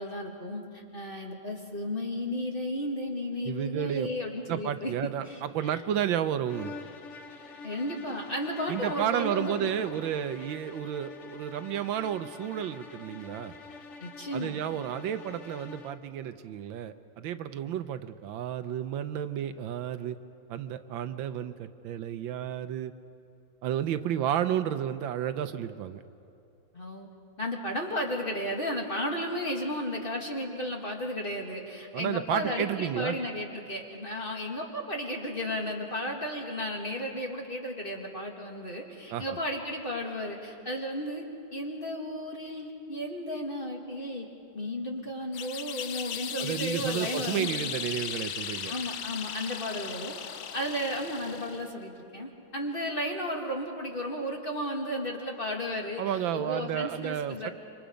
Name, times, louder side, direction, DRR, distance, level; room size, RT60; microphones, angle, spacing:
voice 1, 0.0-4.9 5.2-5.8 7.6-9.7 14.0-14.6 26.7-27.1 27.4-41.2 41.5-44.3 44.5-47.5 48.7-50.2 50.5-56.0 56.3-57.5, equal, 25° left, 0 dB, 2.1 m, -34 dB
voice 2, 3.4-4.1 4.5-6.7 8.7-13.5 14.3-20.2 20.5-22.9 23.6-26.0 31.9-33.2 39.1-39.4 46.4-48.7 56.0-57.5, right 10 dB, 80° right, 11 dB, 1.4 m, -32 dB
sound 1, 6.4-16.1, left 4 dB, 50° left, 1.0 m, -46 dB
sound 2, 45.3-51.7, left 8 dB, 85° left, 1.7 m, -37 dB
27.0 x 25.5 x 5.1 m, 2.7 s
omnidirectional pair, 2.2 m